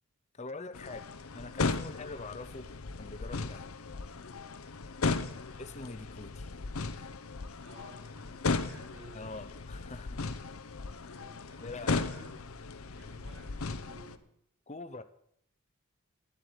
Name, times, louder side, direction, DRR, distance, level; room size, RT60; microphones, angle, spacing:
voice 1, 0.3-1.1 1.3-2.7 3.0-3.8 5.6-6.5 6.9-7.1 9.1-10.2 11.6-12.1 14.7-15.0, left 3 dB, 30° left, 10 dB, 0.8 m, -44 dB
sound 1, 0.7-14.2, left 3 dB, 85° left, 0.8 m, -36 dB
voice 2, 5.0-5.5 7.6-9.2 10.8-12.6 12.9-14.3, equal, 85° right, -1 dB, 6.4 m, -54 dB
12.5 x 7.8 x 8.2 m, 0.71 s
head